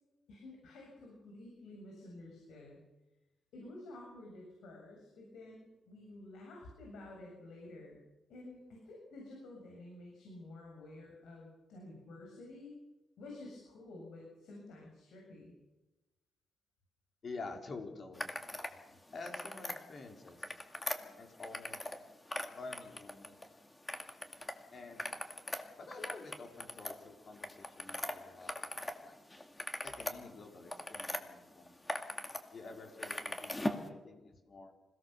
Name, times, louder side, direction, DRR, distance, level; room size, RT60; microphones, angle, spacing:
voice 1, 0.3-2.8 3.5-8.0 8.3-12.8 13.2-15.5, left 2 dB, 85° left, -1 dB, 7.6 m, -51 dB
voice 2, 17.2-18.3 19.1-20.6 21.2-21.9 22.5-23.4 24.7-25.1 25.8-29.2 29.8-31.8 32.5-34.7, left 3 dB, 45° left, 3 dB, 4.6 m, -49 dB
sound 1, 18.1-18.7 19.1-19.8 20.3-22.0 22.3-23.5 23.9-24.5 24.9-29.0 29.3-31.2 31.7-32.4 32.7-33.9, left 1 dB, 15° left, 2.3 m, -40 dB
27.0 x 17.5 x 6.9 m, 1.1 s
cardioid pair, 115°, 0 cm